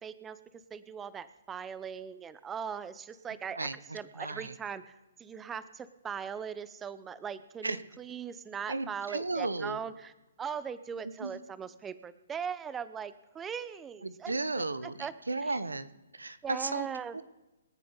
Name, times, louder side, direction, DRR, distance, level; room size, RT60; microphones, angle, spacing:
voice 1, 0.0-3.7 3.9-10.1 10.4-14.4 14.8-15.1 15.4-15.6 16.4-17.2, right 7 dB, 15° right, 14 dB, 0.8 m, -40 dB
voice 2, 4.2-4.5 7.6-7.8 8.7-9.8 11.2-11.4 14.0-14.9 15.3-15.9 16.1-16.9 17.1-17.2, right 3 dB, 85° right, 14 dB, 1.0 m, -34 dB
27.0 x 10.5 x 4.0 m, 1.0 s
figure-of-eight pair, 130°, 0 cm